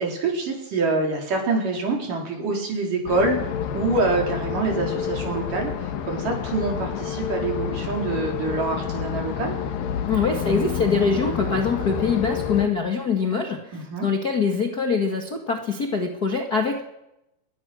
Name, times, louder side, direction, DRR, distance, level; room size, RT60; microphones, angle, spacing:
voice 1, 0.0-9.6 13.7-14.1, right 3 dB, 60° right, 1 dB, 5.9 m, -26 dB
sound 1, 3.1-12.7, left 8 dB, 75° left, 3.3 m, -29 dB
voice 2, 10.1-13.7 14.0-16.8, left 5 dB, 40° left, 3 dB, 1.5 m, -23 dB
25.0 x 21.0 x 6.3 m, 0.88 s
omnidirectional pair, 4.2 m